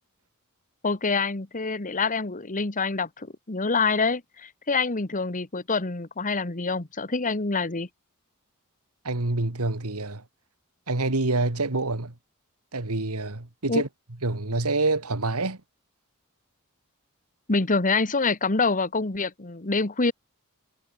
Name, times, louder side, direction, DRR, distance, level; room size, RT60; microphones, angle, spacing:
voice 1, 0.8-7.9 13.7-13.8 17.5-20.1, left 4 dB, 35° left, 1.5 m, -26 dB
voice 2, 9.0-10.2 10.9-12.1 12.7-13.9 14.2-15.6, right 2 dB, 80° right, 2.2 m, -26 dB
head